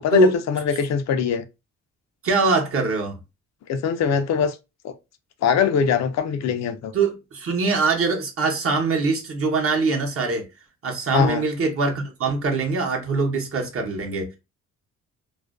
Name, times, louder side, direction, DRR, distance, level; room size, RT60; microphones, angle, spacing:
voice 1, 0.0-1.4 3.7-4.6 4.8-4.9 5.4-6.9 11.1-11.4, left 7 dB, 60° left, 0.5 m, -22 dB
voice 2, 2.2-3.2 6.9-10.5 10.8-14.3, right 3 dB, 45° right, 0.8 m, -22 dB
2.4 x 2.1 x 2.4 m
cardioid pair, 90°, 30 cm